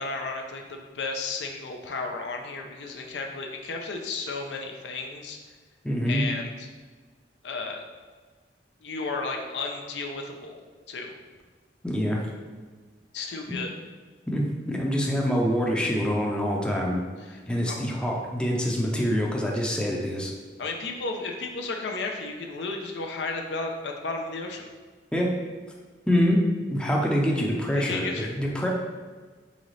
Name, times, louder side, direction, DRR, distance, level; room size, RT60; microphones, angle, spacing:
voice 1, 0.0-5.4 6.1-6.7 7.4-7.8 8.8-10.6 10.9-11.1 13.1-13.7 17.3-17.4 17.7-17.8 20.6-24.7 27.7-28.3, left 3 dB, 80° left, 2 dB, 0.5 m, -33 dB
voice 2, 5.8-6.2 11.8-12.2 13.2-13.3 14.3-17.0 17.5-20.3 25.1-25.3 26.1-26.4 26.7-28.1 28.3-28.7, equal, 5° left, -2 dB, 0.5 m, -25 dB
4.0 x 3.8 x 3.2 m, 1.4 s
head